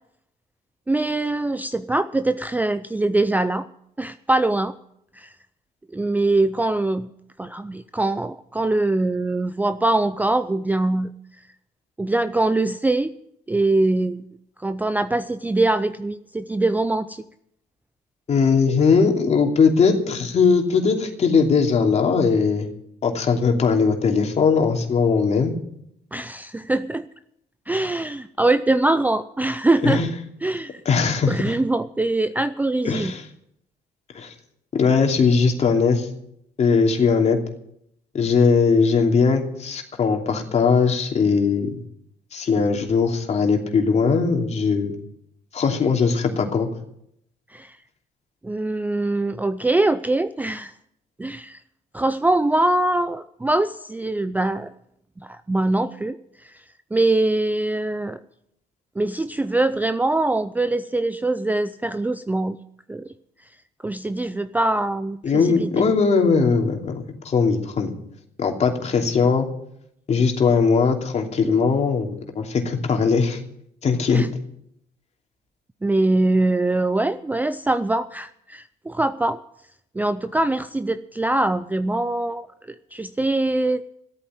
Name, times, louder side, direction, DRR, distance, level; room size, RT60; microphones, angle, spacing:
voice 1, 0.9-3.7 4.0-4.7 5.2-5.3 5.9-7.1 7.4-11.1 12.0-13.1 13.5-14.2 14.6-17.2 26.1-27.1 27.7-30.0 30.4-30.8 31.3-33.1 47.5-47.8 48.4-50.7 51.2-51.6 51.9-54.7 55.2-56.2 56.4-56.5 56.9-58.2 59.0-62.6 62.9-63.0 63.8-65.9 74.1-74.3 75.8-79.4 80.0-82.5 82.9-83.8, right 2 dB, 10° right, 12 dB, 0.5 m, -23 dB
voice 2, 18.3-22.7 23.0-25.5 29.8-30.1 30.8-31.5 32.8-33.3 34.1-34.3 34.8-36.1 36.6-37.4 38.1-41.8 42.3-44.9 45.5-46.7 65.2-67.9 68.4-69.5 70.1-73.4 73.8-74.2, left 5 dB, 40° left, 3 dB, 2.8 m, -19 dB
14.5 x 8.7 x 8.9 m, 0.74 s
cardioid pair, 110°, 17 cm